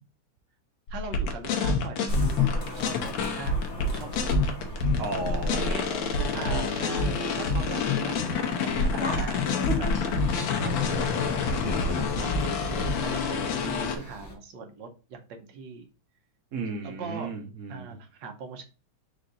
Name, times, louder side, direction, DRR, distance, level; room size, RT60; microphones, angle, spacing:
sound 1, 0.9-14.0, left 4 dB, 70° left, 1.4 m, -27 dB
voice 1, 0.9-4.5 4.8-5.0 5.2-5.9 6.3-9.9 10.6-15.9 16.8-17.4 17.7-18.6, right 5 dB, 65° right, 5 dB, 1.3 m, -41 dB
sound 2, 2.1-14.3, left 1 dB, 45° left, 0.9 m, -35 dB
voice 2, 5.0-6.7 16.5-17.9, right 3 dB, 85° right, 3 dB, 0.6 m, -35 dB
5.0 x 2.5 x 4.0 m, 0.32 s
omnidirectional pair, 2.4 m